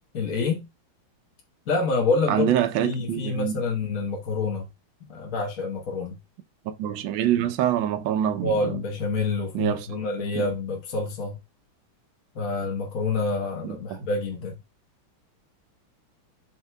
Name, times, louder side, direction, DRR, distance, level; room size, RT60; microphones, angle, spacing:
voice 1, 0.1-0.7 1.7-2.5 2.8-4.7 5.1-6.2 8.4-11.4 12.3-14.6, left 3 dB, 45° left, 1.4 m, -27 dB
voice 2, 2.3-3.6 6.6-8.5 9.5-9.9 10.3-10.5 13.6-14.1, right 10 dB, 70° right, 1.4 m, -25 dB
11.5 x 4.6 x 2.2 m
omnidirectional pair, 2.3 m